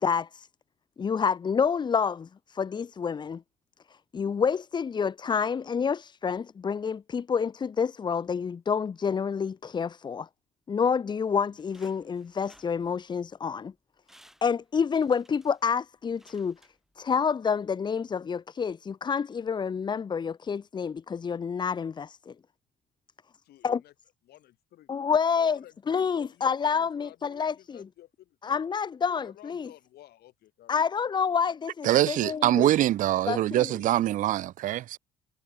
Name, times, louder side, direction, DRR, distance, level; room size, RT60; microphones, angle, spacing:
voice 1, 0.0-0.5 1.0-3.4 4.1-10.3 10.7-13.7 14.4-16.6 17.0-22.3 23.6-23.8 24.9-25.6 25.9-27.8 28.4-29.7 30.7-32.7 33.3-33.7, left 6 dB, 25° left, 0.6 m, -28 dB
sound 1, 11.3-13.3 13.7-13.8 14.0-17.2 17.6-17.7, equal, ahead, 7.7 m, -60 dB
voice 2, 23.4-23.9 24.2-24.9 25.4-28.6 29.1-30.8, left 14 dB, 70° left, 3.1 m, -52 dB
voice 3, 31.8-35.0, right 14 dB, 50° right, 0.4 m, -24 dB
cardioid pair, 110°, 17 cm